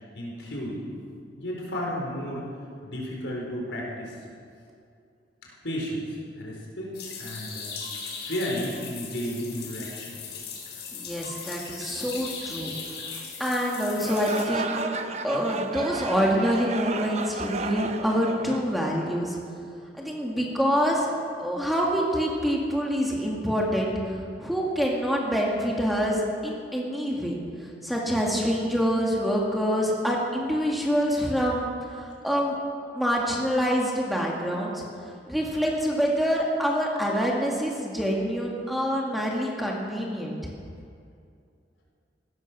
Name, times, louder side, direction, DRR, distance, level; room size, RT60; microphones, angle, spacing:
voice 1, 0.1-0.8 1.4-2.5 2.8-4.2 5.4-7.8 8.2-10.2, equal, 85° left, -2 dB, 4.5 m, -33 dB
sound 1, 6.9-14.4, left 5 dB, 65° left, 4.0 m, -38 dB
voice 2, 10.9-12.7 13.4-14.9 15.2-19.4 20.0-21.1 21.4-32.5 32.9-34.8 35.3-40.4, equal, ahead, -3 dB, 2.1 m, -26 dB
sound 2, 14.0-19.2, right 3 dB, 35° right, 0.8 m, -33 dB
16.0 x 13.5 x 6.3 m, 2.4 s
head